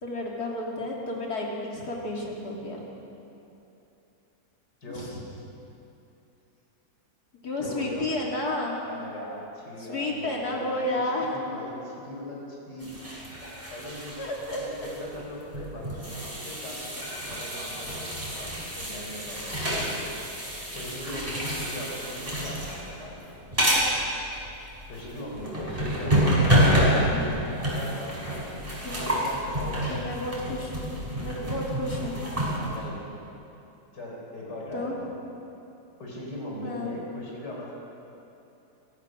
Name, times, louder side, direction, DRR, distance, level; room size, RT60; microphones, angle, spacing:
voice 1, 0.0-2.8 4.9-5.2 7.4-8.8 9.8-11.3 14.2-14.9 25.5-26.2 26.9-27.2 28.8-29.2 29.9-30.8 31.2-32.2 34.7-35.0 36.6-37.0, left 1 dB, 70° left, -2 dB, 3.6 m, -32 dB
voice 2, 7.6-8.1 8.9-11.0 11.2-12.9 13.7-14.2 14.5-20.1 20.7-23.3 24.9-27.1 27.7-28.4 29.2-29.9 32.7-33.0 33.9-35.2 36.0-37.7, left 1 dB, 90° left, -2 dB, 5.2 m, -39 dB
sound 1, 12.8-32.8, equal, 20° right, 5.1 m, -28 dB
25.0 x 16.5 x 6.6 m, 2.9 s
omnidirectional pair, 1.8 m